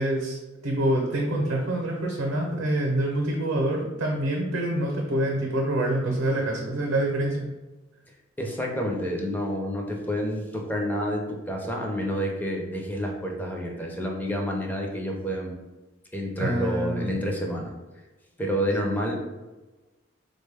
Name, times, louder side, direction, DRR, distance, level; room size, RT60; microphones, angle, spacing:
voice 1, 0.0-7.5 16.4-17.1, right 1 dB, 85° right, -1 dB, 0.6 m, -26 dB
voice 2, 8.4-15.6 16.1-17.7 18.4-19.2, equal, 10° left, 0 dB, 0.5 m, -29 dB
3.6 x 2.2 x 3.3 m, 1.1 s
head